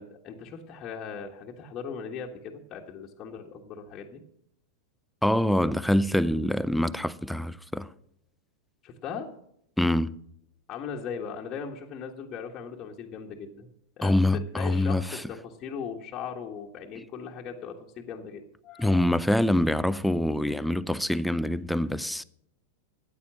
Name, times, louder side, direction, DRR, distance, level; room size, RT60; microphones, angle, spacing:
voice 1, 0.0-4.2 8.8-9.3 10.7-13.7 14.0-14.1 14.5-19.2, left 6 dB, 30° left, 1.5 m, -39 dB
voice 2, 5.2-7.9 9.8-10.1 14.0-15.2 18.8-22.2, left 1 dB, ahead, 0.5 m, -25 dB
14.5 x 9.6 x 5.9 m
figure-of-eight pair, 90°, 0 cm